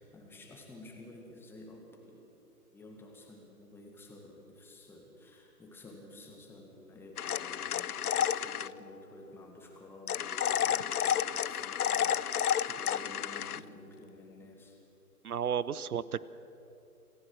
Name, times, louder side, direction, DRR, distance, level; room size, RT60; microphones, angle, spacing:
voice 1, 0.0-2.3 2.7-14.8, left 1 dB, 5° left, 1 dB, 1.8 m, -52 dB
sound 1, 7.2-8.7 10.1-13.6, left 9 dB, 75° left, 0.7 m, -31 dB
voice 2, 15.2-16.2, right 8 dB, 70° right, 18 dB, 0.9 m, -32 dB
28.0 x 14.5 x 6.3 m, 2.9 s
hypercardioid pair, 145°, 46 cm